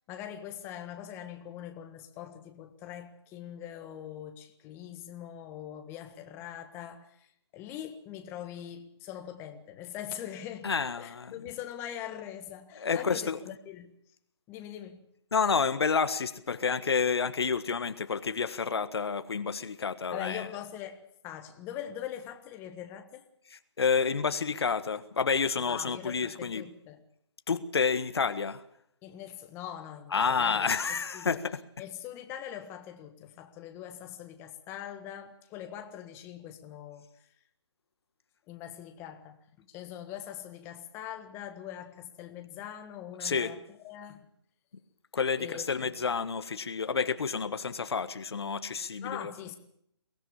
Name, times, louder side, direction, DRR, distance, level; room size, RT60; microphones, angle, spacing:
voice 1, 0.1-13.9 14.5-15.1 20.1-21.0 21.2-23.2 25.6-27.0 29.0-31.4 31.8-37.0 38.5-44.3 45.4-45.9 48.7-49.6, left 10 dB, 15° left, 1.6 m, -42 dB
voice 2, 10.6-11.3 12.7-13.4 15.3-20.5 23.8-26.6 27.5-28.6 30.1-31.6 43.2-43.5 45.1-49.3, left 5 dB, 65° left, 1.6 m, -29 dB
23.0 x 17.5 x 7.1 m
figure-of-eight pair, 150°, 14 cm